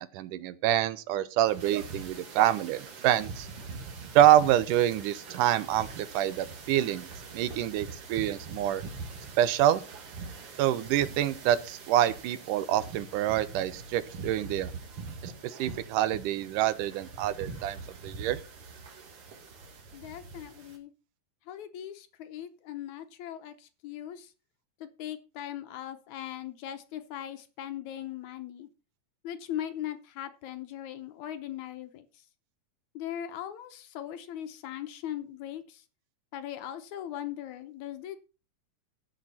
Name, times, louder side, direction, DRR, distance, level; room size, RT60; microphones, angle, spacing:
voice 1, 0.0-3.5 4.2-7.1 7.3-8.8 9.4-9.8 10.6-14.7 15.2-18.4, right 12 dB, 80° right, 15 dB, 2.2 m, -26 dB
sound 1, 1.4-20.8, right 4 dB, 50° right, 2.3 m, -43 dB
voice 2, 19.9-20.9 21.5-24.3 24.8-28.7 29.2-32.2 32.9-35.9 36.3-38.2, left 11 dB, 70° left, 9 dB, 2.0 m, -39 dB
16.5 x 6.1 x 4.2 m, 0.33 s
omnidirectional pair, 3.8 m